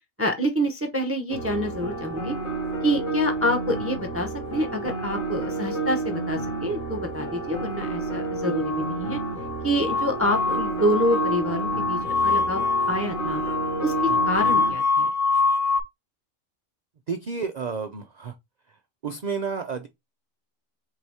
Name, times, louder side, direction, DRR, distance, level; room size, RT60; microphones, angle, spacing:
voice 1, 0.2-2.3 2.8-9.2 9.6-13.4 13.8-13.9 14.3-15.1, equal, 15° right, 0.5 m, -27 dB
sound 1, 1.3-14.7, right 3 dB, 80° left, 1.9 m, -30 dB
sound 2, 8.6-15.8, left 4 dB, 40° left, 0.6 m, -25 dB
voice 2, 17.1-18.3 19.0-19.9, right 5 dB, 75° right, 0.4 m, -31 dB
3.8 x 2.8 x 4.7 m
omnidirectional pair, 1.4 m